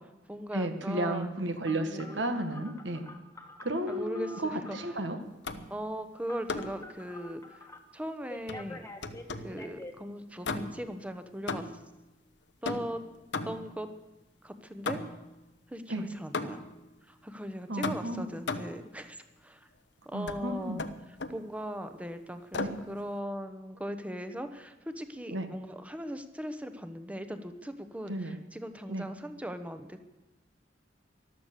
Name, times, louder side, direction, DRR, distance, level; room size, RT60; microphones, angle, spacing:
voice 1, 0.0-2.3 3.9-4.8 5.7-7.7 7.9-8.8 9.4-11.7 12.6-13.0 13.4-13.9 14.4-15.0 15.7-16.7 17.1-19.7 20.0-20.8 21.3-30.1, equal, 5° right, 9 dB, 1.0 m, -39 dB
voice 2, 0.5-3.1 3.6-5.2 15.9-16.1 17.7-18.3 20.1-20.8 22.6-22.7 25.3-25.5 28.1-28.4 28.9-29.1, right 1 dB, 75° right, 7 dB, 1.6 m, -33 dB
Telephone, 1.6-5.0 6.3-7.8 8.3-9.9, left 2 dB, 15° left, 1.3 m, -47 dB
sound 1, 5.4-5.8 6.5-6.9 8.5-9.6 10.4-11.0 11.5-11.9 12.6-13.8 14.9-15.3 16.3-16.8 17.8-18.8 20.3-20.4 20.8-21.4 22.5-22.9, left 3 dB, 65° left, 0.9 m, -36 dB
14.0 x 12.0 x 6.7 m, 1.1 s
head